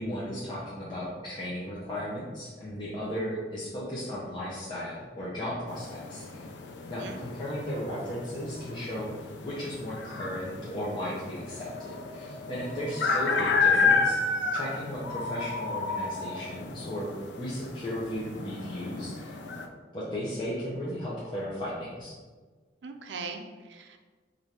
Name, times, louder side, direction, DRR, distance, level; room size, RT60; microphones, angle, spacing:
voice 1, 0.0-6.4 6.9-9.1 9.4-14.2 14.5-19.4 19.9-22.2, equal, 25° left, -7 dB, 0.6 m, -35 dB
sound 1, 5.7-19.7, left 4 dB, 70° left, 0.4 m, -31 dB
voice 2, 22.8-24.0, right 4 dB, 70° right, 6 dB, 0.4 m, -40 dB
3.3 x 2.5 x 4.2 m, 1.4 s
head